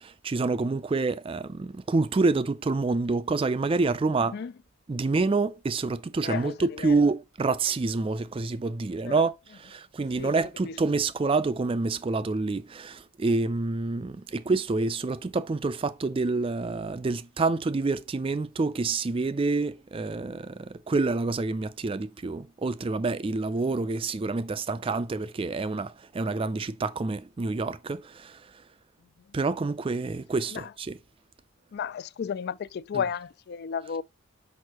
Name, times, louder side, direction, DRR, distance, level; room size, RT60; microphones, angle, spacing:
voice 1, 0.0-4.4 4.9-28.4 29.3-31.0, right 3 dB, 25° right, 0.3 m, -27 dB
voice 2, 6.2-7.0 9.0-9.2 10.2-10.4 10.6-10.8 30.5-30.7 31.7-34.0, left 7 dB, 50° left, 0.3 m, -33 dB
6.2 x 5.5 x 2.9 m
head